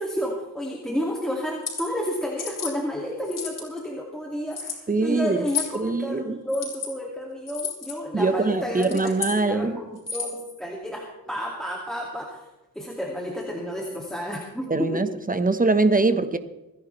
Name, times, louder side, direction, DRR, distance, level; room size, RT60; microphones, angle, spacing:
voice 1, 0.0-12.4 12.8-15.1, equal, ahead, -1 dB, 2.4 m, -31 dB
sound 1, 1.5-1.8 2.4-2.7 3.2-3.8 4.5-4.8 5.5-5.8 6.5-6.9 7.5-7.9 8.7-9.4 10.0-10.4, left 7 dB, 55° left, 5.1 m, -32 dB
voice 2, 4.9-5.4 5.7-6.4 8.1-9.8 14.7-16.4, right 3 dB, 20° right, 10 dB, 1.3 m, -23 dB
27.5 x 10.5 x 3.4 m, 1.0 s
cardioid pair, 80°, 38 cm